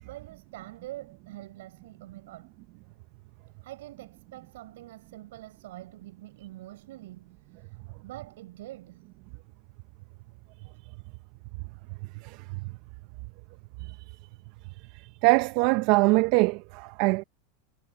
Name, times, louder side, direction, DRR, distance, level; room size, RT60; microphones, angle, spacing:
voice 1, 0.0-2.5 3.6-7.8 8.0-9.0, right 16 dB, 75° right, 7.3 m, -45 dB
voice 2, 15.2-17.2, right 26 dB, 60° right, 0.8 m, -23 dB
hypercardioid pair, 100°, 0 cm